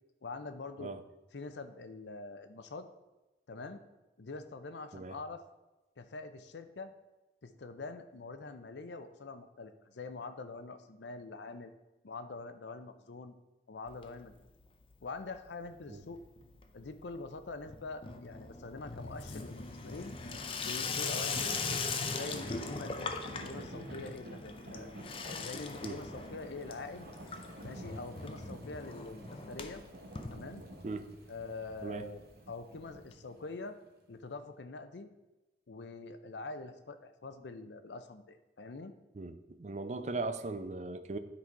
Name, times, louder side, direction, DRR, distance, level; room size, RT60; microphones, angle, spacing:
voice 1, 0.2-0.9 1.3-2.9 3.5-3.8 4.2-5.4 6.0-6.9 7.4-11.7 12.0-13.3 13.7-14.4 15.0-16.2 16.7-20.2 20.6-21.7 22.1-24.9 25.4-27.1 27.6-29.8 30.3-30.6 31.3-33.8 34.1-35.1 35.7-38.9, left 3 dB, 85° left, 10 dB, 0.6 m, -44 dB
Water tap faucet / Sink (filling or washing), 13.9-14.7 14.9-15.5 15.8-31.0 31.4-31.5 31.7-31.8 32.0-32.1 33.1-33.2, left 4 dB, 30° left, 0.5 m, -40 dB
sound 1, 19.0-33.5 33.9-34.0, right 1 dB, 60° right, 1.0 m, -50 dB
voice 2, 39.2-41.2, right 3 dB, 40° right, 11 dB, 0.4 m, -38 dB
9.8 x 4.1 x 4.6 m, 1.1 s
head